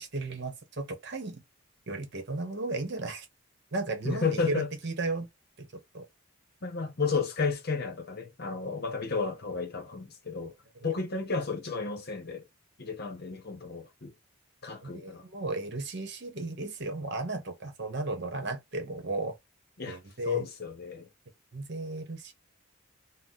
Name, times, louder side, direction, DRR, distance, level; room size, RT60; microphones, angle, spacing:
voice 1, 0.0-1.4 1.9-3.3 3.7-5.3 5.6-5.7 5.9-6.0 14.8-19.3 19.9-20.5 21.5-22.3, right 2 dB, 55° right, 0.9 m, -35 dB
voice 2, 4.0-4.7 6.6-10.5 10.8-12.4 12.8-14.1 14.6-15.2 19.8-20.0 20.2-21.1, left 4 dB, 50° left, 0.8 m, -32 dB
3.8 x 2.1 x 2.7 m
head